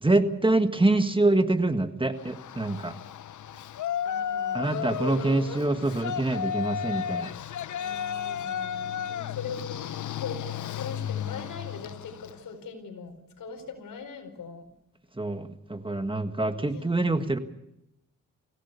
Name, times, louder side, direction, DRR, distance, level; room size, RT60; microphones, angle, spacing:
voice 1, 0.0-2.9 4.5-7.3 15.2-17.4, right 2 dB, 15° right, 8 dB, 1.6 m, -25 dB
Yell, 2.2-12.4, left 9 dB, 65° left, 0.7 m, -34 dB
voice 2, 4.0-5.7 7.7-9.8 10.2-10.5 10.8-14.7 16.7-17.0, left 5 dB, 85° left, 7 dB, 4.4 m, -40 dB
25.5 x 16.5 x 6.9 m, 0.84 s
cardioid pair, 80°, 32 cm